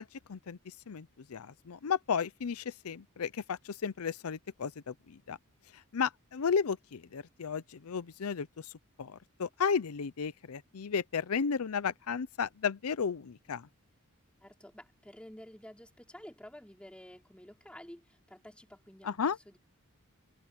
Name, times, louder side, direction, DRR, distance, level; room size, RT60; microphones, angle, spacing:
voice 1, 0.0-5.4 5.9-8.7 9.0-13.7 19.0-19.4, left 6 dB, 90° left, 0.6 m, -34 dB
voice 2, 14.4-19.6, equal, 5° left, 3.8 m, -51 dB
head